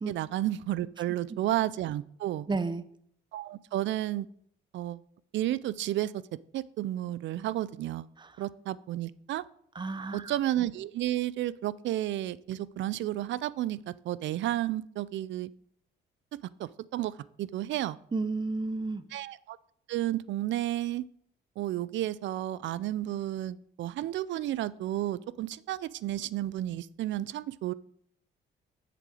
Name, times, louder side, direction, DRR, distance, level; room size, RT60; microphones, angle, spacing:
voice 1, 0.1-2.5 3.3-4.3 4.7-5.0 5.3-6.2 6.5-8.1 8.4-9.4 10.1-15.5 16.3-18.0 19.1-19.6 19.9-21.1 21.6-27.7, right 14 dB, 70° right, 19 dB, 0.4 m, -32 dB
voice 2, 2.5-2.8 9.8-10.2 18.1-19.0, right 3 dB, 25° right, 13 dB, 0.7 m, -31 dB
7.7 x 6.7 x 4.9 m, 0.66 s
cardioid pair, 90°, 20 cm